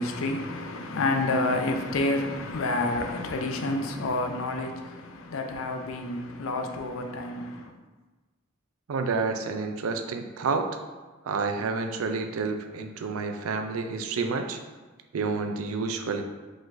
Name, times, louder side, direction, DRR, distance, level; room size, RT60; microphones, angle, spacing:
voice 1, 0.0-7.7, left 2 dB, 75° left, 0.5 m, -29 dB
voice 2, 8.9-10.7 11.3-14.6 15.1-16.2, right 4 dB, 85° right, 0.4 m, -29 dB
4.9 x 3.8 x 2.6 m
head